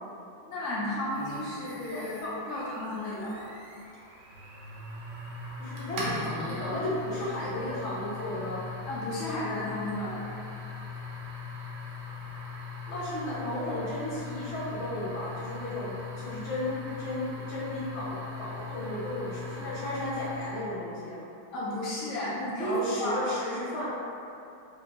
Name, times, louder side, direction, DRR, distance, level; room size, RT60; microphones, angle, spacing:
voice 1, 0.5-3.5 8.9-10.2 21.5-23.3, left 1 dB, 90° left, -7 dB, 0.7 m, -33 dB
sound 1, 1.1-20.7, left 3 dB, 65° right, 1.3 m, -40 dB
voice 2, 5.6-8.6 12.9-21.3 22.6-23.9, left 1 dB, 50° left, -8 dB, 0.9 m, -34 dB
3.6 x 3.0 x 2.9 m, 2.7 s
omnidirectional pair, 2.2 m